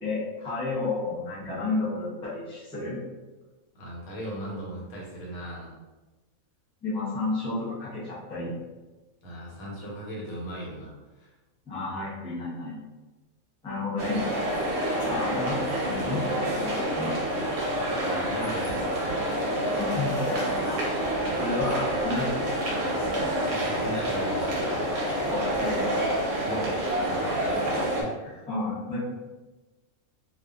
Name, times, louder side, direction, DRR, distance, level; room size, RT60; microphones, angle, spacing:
voice 1, 0.0-3.0 6.8-8.5 11.7-12.8 13.6-14.2 15.0-15.6 15.9-17.1 19.8-20.8 21.4-22.5 25.3-25.9 28.2-29.0, left 3 dB, 10° left, -8 dB, 0.3 m, -31 dB
voice 2, 3.7-5.7 9.2-10.9 11.2-11.3 18.0-19.3 23.5-25.3 26.4-26.8 27.1-28.5, right 1 dB, 85° left, -4 dB, 1.3 m, -38 dB
sound 1, 14.0-28.0, right 1 dB, 60° right, 0.8 m, -28 dB
2.4 x 2.4 x 2.3 m, 1.2 s
omnidirectional pair, 1.5 m